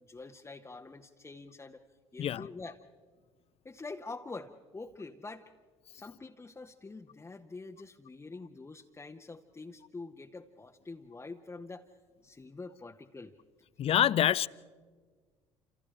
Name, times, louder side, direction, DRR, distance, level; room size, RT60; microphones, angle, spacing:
voice 1, 0.1-1.8 2.1-2.8 3.6-5.5 5.9-11.9 12.2-13.3, left 3 dB, 15° left, 1.0 m, -46 dB
voice 2, 13.8-14.5, left 11 dB, 40° left, 0.5 m, -26 dB
28.5 x 28.0 x 3.3 m
figure-of-eight pair, 55°, 16 cm